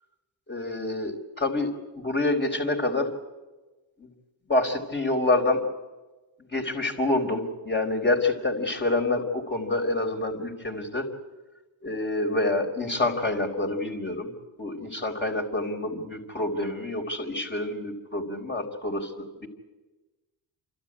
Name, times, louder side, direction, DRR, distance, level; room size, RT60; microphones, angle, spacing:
voice 1, 0.5-3.1 4.0-4.1 4.5-5.6 6.5-11.1 11.8-14.3 14.6-19.5, left 2 dB, 20° left, 2 dB, 4.3 m, -27 dB
29.0 x 12.5 x 9.8 m, 1.2 s
cardioid pair, 70°, 49 cm